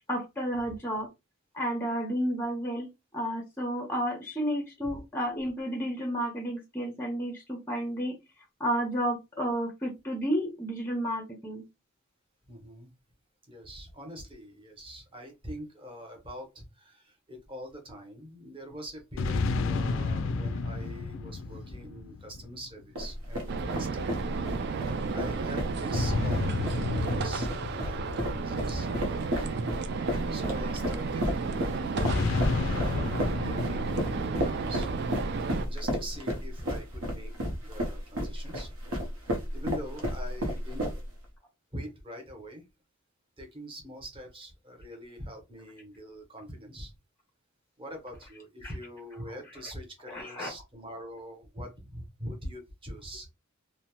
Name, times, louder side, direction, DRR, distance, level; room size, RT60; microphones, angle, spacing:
voice 1, 0.1-1.1 1.5-2.9 3.1-8.2 8.6-11.6 32.2-32.3 48.6-48.7 50.1-50.5, equal, 10° left, 0.5 m, -31 dB
voice 2, 12.5-12.9 13.5-24.1 24.8-29.5 30.3-34.9 35.7-38.7 39.5-40.9 41.7-42.6 43.4-46.9 47.8-53.3, equal, 25° right, 0.8 m, -43 dB
sound 1, 19.2-22.8 25.9-29.6 32.0-35.4, left 3 dB, 65° left, 0.3 m, -31 dB
sound 2, 23.0-41.3, equal, 75° right, 0.8 m, -33 dB
sound 3, 23.5-35.6, right 4 dB, 50° right, 0.3 m, -33 dB
2.7 x 2.0 x 2.9 m
head